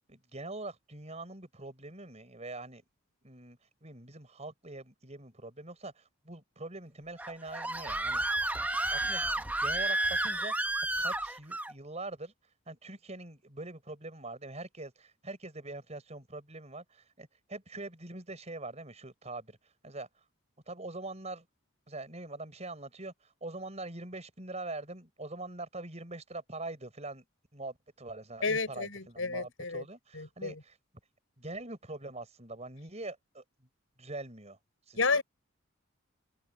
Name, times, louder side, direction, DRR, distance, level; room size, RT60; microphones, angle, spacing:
voice 1, 0.1-2.8 3.2-8.4 8.7-12.3 12.7-19.6 19.8-20.1 20.7-21.5 21.9-27.2 27.5-30.8 31.4-33.7 34.0-34.6 34.9-35.2, right 2 dB, 30° right, 5.2 m, -43 dB
Screaming, 7.2-11.7, right 1 dB, 10° right, 0.8 m, -31 dB
voice 2, 28.4-29.8 30.1-30.5 35.0-35.2, left 4 dB, 75° left, 4.8 m, -31 dB
head